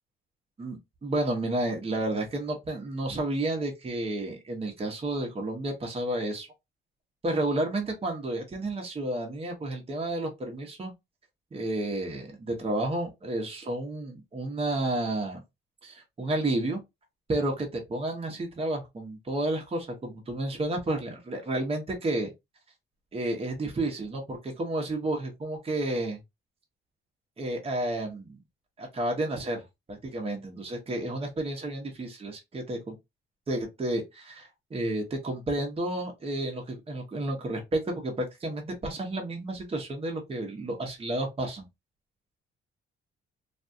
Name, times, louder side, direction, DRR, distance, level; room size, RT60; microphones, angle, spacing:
voice 1, 0.6-6.5 7.2-10.9 11.5-15.4 15.8-16.8 17.3-22.3 23.1-26.2 27.4-28.4 28.8-32.9 33.5-41.7, right 1 dB, 30° right, 1.0 m, -31 dB
2.6 x 2.3 x 2.6 m
cardioid pair, 90°, 20 cm